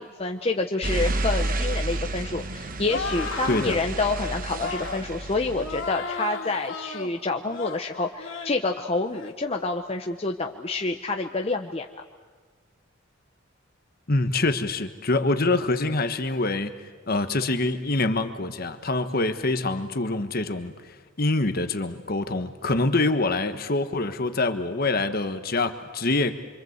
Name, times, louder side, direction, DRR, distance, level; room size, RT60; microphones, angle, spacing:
voice 1, 0.0-11.9, left 3 dB, 30° left, 4 dB, 0.9 m, -28 dB
sound 1, 0.8-5.9, right 2 dB, 45° right, 1.2 m, -30 dB
sound 2, 2.9-3.8 4.5-5.0 5.5-7.1 7.5-7.8 8.2-8.6 9.0-9.3, left 4 dB, 70° left, 2.6 m, -34 dB
voice 2, 3.4-3.8 14.1-16.7 17.1-26.3, left 2 dB, 50° left, 9 dB, 1.4 m, -25 dB
26.5 x 25.0 x 8.0 m, 1.4 s
head